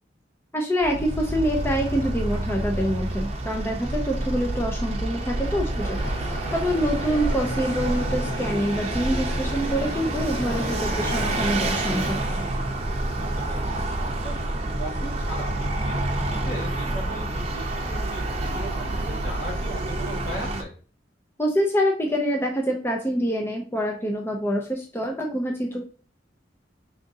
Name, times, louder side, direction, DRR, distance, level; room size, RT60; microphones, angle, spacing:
voice 1, 0.5-6.1 6.5-12.2 21.4-25.9, equal, 15° left, 0 dB, 0.6 m, -26 dB
Vehicle, 0.8-20.6, right 1 dB, 35° right, 0.7 m, -28 dB
voice 2, 5.5-6.0 13.1-13.8 14.2-14.4 14.8-20.7, right 1 dB, 65° left, -4 dB, 2.4 m, -38 dB
sound 1, 6.0-12.4, left 2 dB, 80° left, 1.4 m, -37 dB
5.1 x 3.6 x 2.6 m, 0.39 s
head